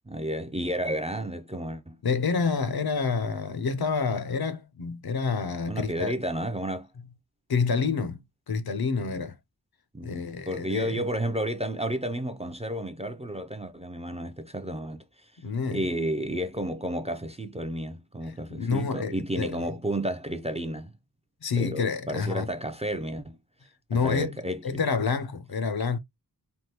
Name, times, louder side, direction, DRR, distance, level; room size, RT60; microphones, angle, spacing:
voice 1, 0.1-2.0 5.7-6.9 9.9-15.3 15.6-20.9 21.6-23.4 23.9-24.8, right 1 dB, 15° right, 0.4 m, -32 dB
voice 2, 2.0-6.1 7.5-9.4 10.0-11.0 15.4-15.9 18.5-19.7 21.4-22.5 23.9-24.4 24.6-26.0, left 5 dB, 60° left, 0.7 m, -28 dB
3.5 x 2.2 x 2.8 m
wide cardioid pair, 70°, 41 cm